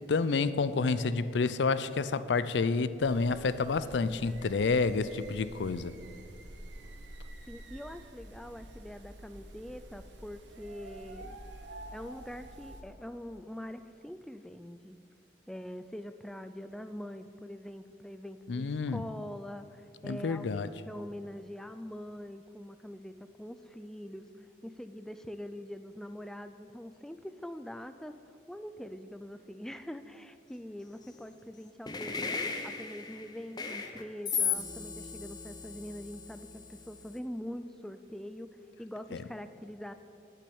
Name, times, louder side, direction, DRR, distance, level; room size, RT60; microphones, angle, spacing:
voice 1, 0.1-6.0 18.5-19.0 20.0-20.7, left 4 dB, 75° left, 15 dB, 0.5 m, -29 dB
sound 1, 3.0-12.8, right 1 dB, 85° right, 1.1 m, -48 dB
voice 2, 7.5-11.4 11.9-15.0 15.5-32.3 32.6-38.5 38.8-39.9, equal, 5° left, 9 dB, 0.3 m, -44 dB
sound 2, 31.9-37.1, left 6 dB, 25° left, 0.8 m, -36 dB
8.5 x 8.5 x 8.6 m, 2.6 s
head